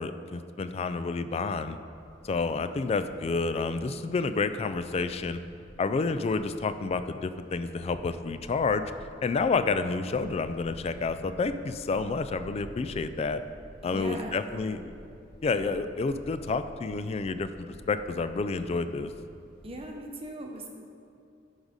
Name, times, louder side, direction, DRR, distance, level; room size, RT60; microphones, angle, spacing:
voice 1, 0.0-1.8 2.2-5.4 5.8-8.8 9.2-13.4 13.8-14.9 15.4-19.1, left 4 dB, 30° left, 11 dB, 0.3 m, -29 dB
sound 1, 1.9-19.8, equal, 50° left, 1.9 m, -51 dB
voice 2, 13.8-14.8 19.6-20.7, right 1 dB, 30° right, 1 dB, 0.9 m, -40 dB
11.0 x 4.0 x 5.1 m, 2.5 s
head